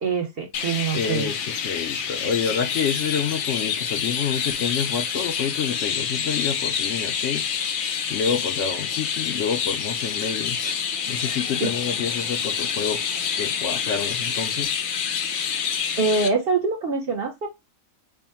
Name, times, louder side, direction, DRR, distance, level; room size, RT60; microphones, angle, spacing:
voice 1, 0.0-1.3 11.2-11.7 16.0-17.5, right 4 dB, 50° right, 0.8 m, -25 dB
Chirp tweet, 0.5-16.3, left 7 dB, 90° left, 0.4 m, -27 dB
voice 2, 0.9-10.8 11.1-13.0 13.4-14.7, left 7 dB, 65° left, 0.8 m, -28 dB
3.3 x 2.1 x 4.2 m
omnidirectional pair, 1.5 m